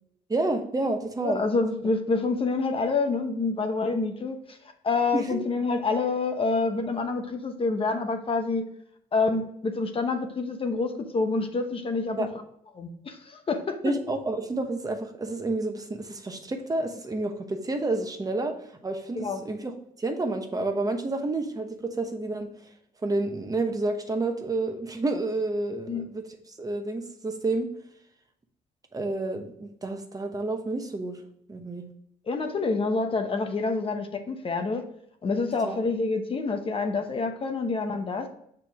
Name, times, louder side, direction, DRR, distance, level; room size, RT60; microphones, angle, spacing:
voice 1, 0.3-1.4 5.1-5.4 12.2-12.3 13.8-22.5 23.0-26.2 26.6-27.7 28.9-31.2 31.5-31.8 35.6-35.8, right 2 dB, 25° right, 5 dB, 0.9 m, -29 dB
voice 2, 1.2-4.6 4.8-8.6 9.1-12.3 12.7-13.9 19.2-19.4 25.9-26.0 32.3-34.8 35.2-38.3, left 3 dB, 40° left, 5 dB, 0.9 m, -27 dB
6.0 x 4.5 x 3.5 m, 0.72 s
cardioid pair, 85°, 15 cm